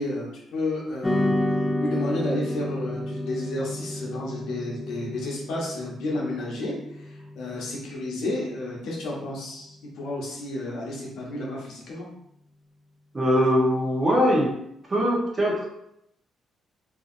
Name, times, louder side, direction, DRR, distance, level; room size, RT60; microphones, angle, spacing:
voice 1, 0.0-1.4 1.8-12.1, left 2 dB, 80° left, -3 dB, 0.9 m, -31 dB
sound 1, 1.0-9.6, left 1 dB, 15° left, 0.4 m, -31 dB
voice 2, 13.1-14.5 14.9-15.7, equal, 30° right, -3 dB, 1.0 m, -21 dB
2.9 x 2.6 x 2.6 m, 0.78 s
cardioid pair, 90°, 0 cm